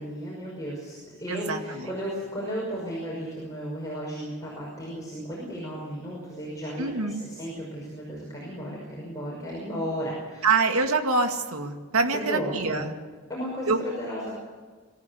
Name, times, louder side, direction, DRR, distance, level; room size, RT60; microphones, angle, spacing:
voice 1, 0.0-10.5 12.1-12.8 13.3-14.4, equal, 15° left, -5 dB, 5.6 m, -34 dB
voice 2, 1.3-1.9 6.8-7.2 10.4-12.9 13.7-13.8, right 4 dB, 85° right, 5 dB, 2.1 m, -25 dB
23.5 x 15.0 x 8.3 m, 1.4 s
head